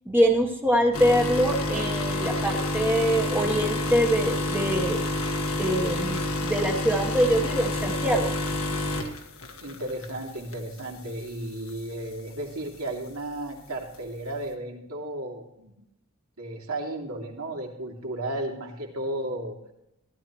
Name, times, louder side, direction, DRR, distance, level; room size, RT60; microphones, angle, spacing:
voice 1, 0.1-5.1 5.6-8.3, equal, 10° right, 1 dB, 1.1 m, -24 dB
sound 1, 0.9-10.1 10.5-10.8 11.7-11.8, left 1 dB, 75° left, 1.6 m, -28 dB
voice 2, 9.6-15.8 16.4-19.6, right 1 dB, 85° right, 0 dB, 2.7 m, -34 dB
15.0 x 12.0 x 3.1 m, 0.84 s
head